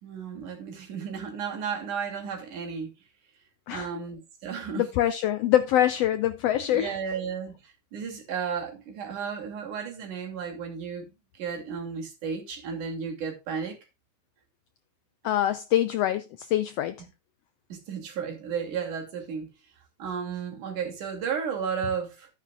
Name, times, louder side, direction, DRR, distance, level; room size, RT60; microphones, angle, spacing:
voice 1, 0.0-2.9 3.7-4.9 6.7-11.1 11.4-13.8 15.2-15.3 17.0-17.1 17.7-19.5 20.0-22.3, right 6 dB, 85° right, 4.1 m, -33 dB
voice 2, 4.8-7.0 15.2-17.0, left 12 dB, 85° left, 1.4 m, -24 dB
12.0 x 9.3 x 2.4 m
omnidirectional pair, 3.4 m